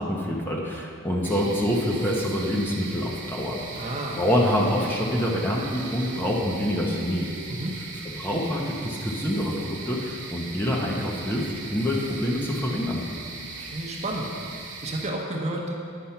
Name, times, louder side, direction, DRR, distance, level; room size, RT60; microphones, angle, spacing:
voice 1, 0.0-3.6 4.2-7.3 8.0-13.0, equal, 10° left, -2 dB, 0.8 m, -26 dB
sound 1, 1.2-15.1, right 3 dB, 55° right, 1.3 m, -39 dB
voice 2, 3.8-4.2 7.5-7.8 13.6-14.3 14.6-15.8, right 1 dB, 30° right, -1 dB, 0.9 m, -31 dB
10.0 x 4.6 x 5.8 m, 2.4 s
head